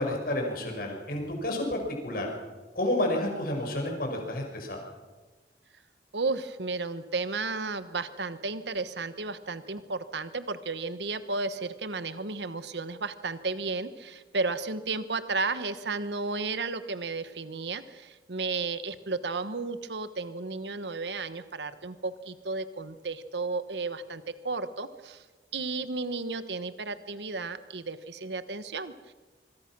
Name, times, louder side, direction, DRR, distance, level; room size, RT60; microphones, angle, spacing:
voice 1, 0.0-2.3 2.7-4.8, left 1 dB, 55° left, 2 dB, 5.7 m, -30 dB
voice 2, 6.1-25.2 25.5-29.1, right 3 dB, 75° right, 12 dB, 1.2 m, -33 dB
25.5 x 23.0 x 6.1 m, 1.3 s
head